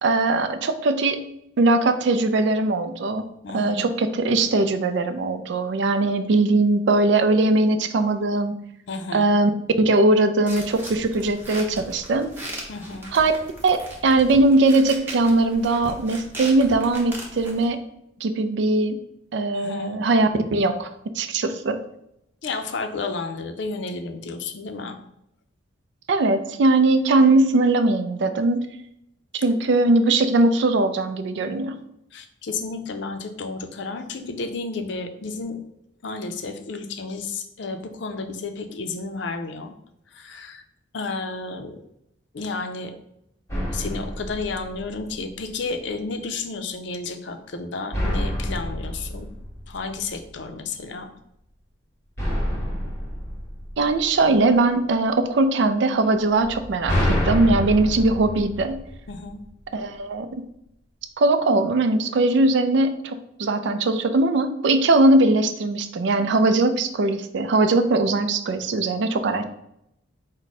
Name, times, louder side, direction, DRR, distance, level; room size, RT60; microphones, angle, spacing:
voice 1, 0.0-1.2 1.6-3.2 3.5-8.6 9.1-9.5 9.8-12.3 13.1-13.3 13.6-17.8 18.2-19.0 19.3-20.9 21.2-21.8 26.1-28.7 29.3-31.8 53.8-58.8 59.7-60.4 61.2-69.4, right 2 dB, 65° right, 9 dB, 0.4 m, -20 dB
voice 2, 3.4-3.9 8.9-9.3 12.7-13.2 19.5-20.0 22.4-25.0 32.1-35.6 36.0-39.7 40.1-40.6 40.9-41.8 42.3-42.9 43.7-49.3 49.7-51.1 59.1-59.4, left 3 dB, 65° left, 6 dB, 0.5 m, -32 dB
sound 1, 10.5-17.7, right 1 dB, 10° right, 0.8 m, -38 dB
sound 2, 43.5-45.4 47.9-50.3 52.2-54.4 56.4-59.4, equal, 15° left, 1.0 m, -28 dB
4.7 x 2.1 x 4.0 m, 0.78 s
head